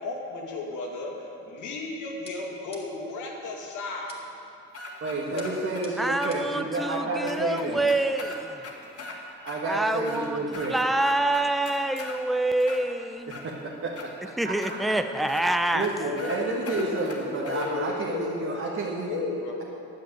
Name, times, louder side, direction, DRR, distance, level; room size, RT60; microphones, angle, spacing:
voice 1, 0.0-4.2 5.3-5.6 16.0-18.6 19.1-19.6, left 3 dB, 80° left, 0 dB, 2.3 m, -34 dB
sound 1, 2.3-3.2 4.1-4.5 5.4-6.6, left 2 dB, 20° left, 2.5 m, -49 dB
sound 2, 4.7-5.8 6.2-6.3 6.7-6.8 7.3-9.2 9.5-9.6 10.0-10.7 11.0-12.2 12.6-13.4 14.0-14.1 14.6-14.8 15.3-15.4 15.8-15.9 16.2-16.4 16.7-17.7, left 2 dB, 50° left, 2.3 m, -40 dB
voice 2, 5.0-7.8 9.4-10.8 13.3-13.5 13.8-13.9 14.4-14.8 15.7-19.2, right 3 dB, 45° right, -3 dB, 1.6 m, -30 dB
voice 3, 6.0-8.6 9.7-13.4 14.4-15.9, right 1 dB, ahead, 8 dB, 0.6 m, -26 dB
10.5 x 7.9 x 8.9 m, 2.7 s
cardioid pair, 90°, 30 cm